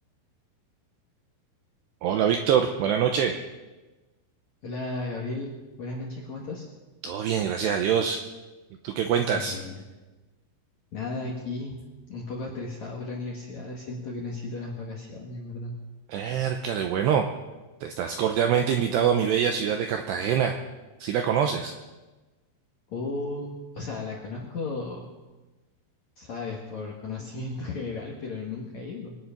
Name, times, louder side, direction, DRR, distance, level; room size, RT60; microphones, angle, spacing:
voice 1, 2.0-3.3 7.0-8.2 8.8-9.6 16.1-17.2 17.8-20.5 21.0-21.7, right 8 dB, 85° right, 5 dB, 2.4 m, -24 dB
voice 2, 4.6-5.5 5.8-6.7 9.3-9.8 10.9-11.7 12.1-15.7 22.9-25.1 26.2-29.2, left 3 dB, 60° left, -2 dB, 1.9 m, -35 dB
24.0 x 9.7 x 5.9 m, 1.2 s
omnidirectional pair, 5.9 m